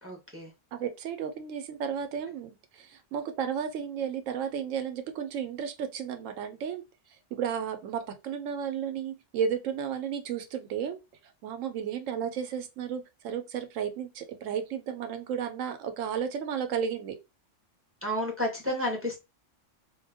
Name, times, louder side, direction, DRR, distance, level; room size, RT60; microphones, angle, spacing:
voice 1, 0.0-0.5 18.0-19.2, left 1 dB, 15° right, 0.4 m, -31 dB
voice 2, 0.7-6.8 7.3-11.0 11.4-17.2, right 7 dB, 85° right, 1.0 m, -33 dB
2.2 x 2.1 x 3.3 m
omnidirectional pair, 1.3 m